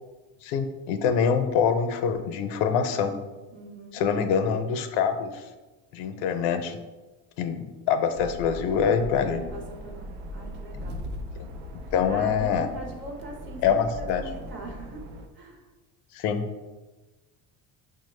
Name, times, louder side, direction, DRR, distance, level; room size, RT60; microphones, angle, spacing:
voice 1, 0.4-3.1 3.9-5.4 5.9-6.8 7.4-9.4 11.9-12.7 13.6-14.2 16.1-16.4, left 7 dB, 75° left, 8 dB, 0.5 m, -25 dB
voice 2, 3.5-4.0 9.5-11.0 12.1-15.1 15.3-15.6, right 2 dB, 30° right, 1 dB, 0.5 m, -42 dB
sound 1, 8.1-15.3, equal, 85° right, 0.6 m, -39 dB
5.5 x 2.1 x 3.1 m, 1.2 s
cardioid pair, 155°, 43 cm